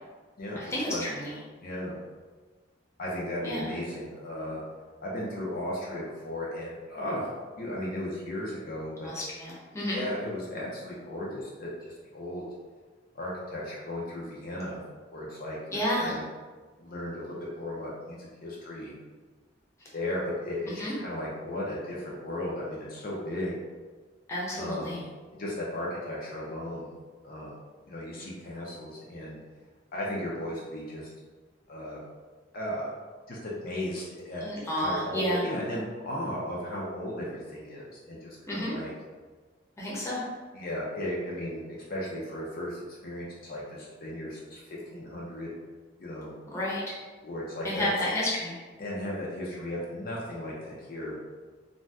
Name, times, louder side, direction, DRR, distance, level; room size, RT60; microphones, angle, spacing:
voice 1, 0.6-1.3 3.4-3.7 9.0-10.0 15.7-16.1 20.8-20.9 24.3-25.0 34.4-35.4 38.5-38.7 39.8-40.2 46.5-46.8 47.6-48.5, left 1 dB, 15° left, -7 dB, 0.7 m, -31 dB
voice 2, 1.6-2.0 3.0-4.6 5.0-9.1 9.9-12.4 13.1-14.8 15.1-16.2 16.8-18.9 19.9-23.5 24.5-25.0 25.4-26.9 27.2-27.6 27.9-29.4 29.9-31.1 31.7-32.0 32.5-32.9 33.3-34.4 34.7-38.9 40.5-41.6 41.9-45.5 46.0-46.3 47.2-47.9 48.8-51.2, left 1 dB, 50° left, -5 dB, 0.5 m, -35 dB
2.6 x 2.1 x 3.3 m, 1.4 s
head